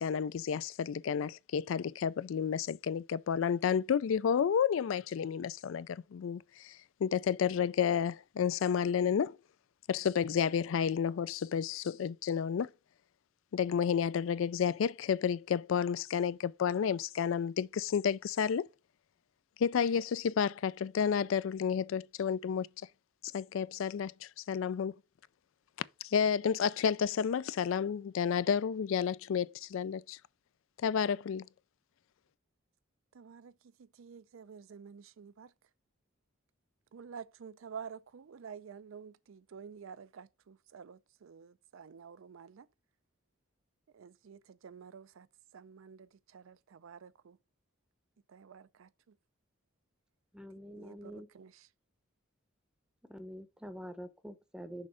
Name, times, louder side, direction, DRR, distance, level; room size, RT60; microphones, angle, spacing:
voice 1, 0.0-9.4 9.9-12.7 13.5-18.7 19.6-22.7 23.3-24.9 26.0-30.2 30.8-31.4, left 7 dB, 80° left, 0.3 m, -31 dB
voice 2, 33.1-33.5 34.0-35.5 36.9-42.7 43.9-45.3 45.5-47.4 48.3-48.9 50.8-51.5, right 6 dB, 85° right, 0.4 m, -50 dB
voice 3, 50.3-51.3 53.0-54.9, equal, 5° right, 0.7 m, -46 dB
6.3 x 3.7 x 4.8 m
head